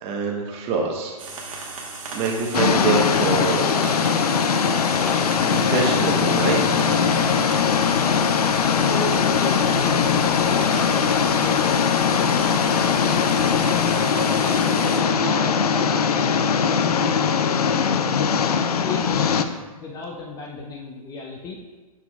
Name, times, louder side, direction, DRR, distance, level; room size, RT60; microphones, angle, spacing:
voice 1, 0.0-1.2 1.4-1.5 2.1-3.7 4.1-4.3 5.5-6.9, right 4 dB, 30° right, 1 dB, 1.0 m, -26 dB
sound 1, 1.2-15.0, right 4 dB, 60° right, 1.3 m, -37 dB
sound 2, 2.5-19.4, left 6 dB, 80° left, 0.4 m, -20 dB
voice 2, 8.6-13.8 14.4-18.1 18.8-21.6, left 3 dB, 20° left, 0 dB, 0.5 m, -35 dB
6.8 x 6.0 x 2.3 m, 1.3 s
hypercardioid pair, 125°, 19 cm